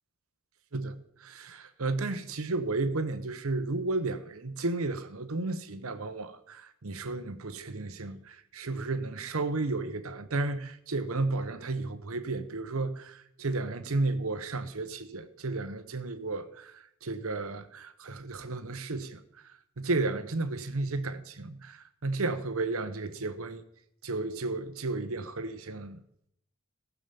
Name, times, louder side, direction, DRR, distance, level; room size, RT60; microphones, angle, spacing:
voice 1, 0.7-23.6 24.0-26.0, right 3 dB, 75° right, 1.0 m, -33 dB
15.0 x 7.1 x 6.9 m
head